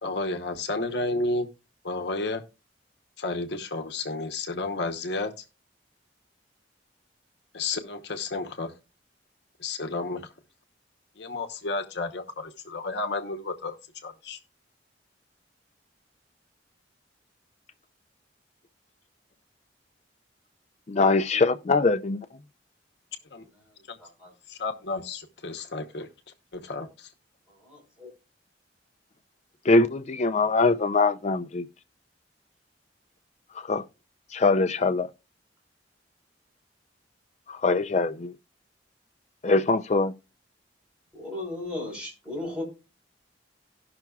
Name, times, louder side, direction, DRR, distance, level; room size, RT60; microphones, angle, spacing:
voice 1, 0.0-1.5 1.8-2.4 3.2-5.3 7.5-8.7 9.6-10.2 11.2-13.8 14.0-14.4 23.3-23.4 24.5-26.1 26.5-27.1, left 3 dB, 65° left, 0.9 m, -31 dB
voice 2, 20.9-22.2 29.7-31.7 33.7-33.8 34.3-35.1 37.5-38.3 39.4-40.1, left 3 dB, 40° left, 0.5 m, -22 dB
voice 3, 24.0-24.3 27.5-28.1 41.1-42.6, left 2 dB, 5° right, 4.4 m, -36 dB
17.5 x 5.9 x 2.3 m
head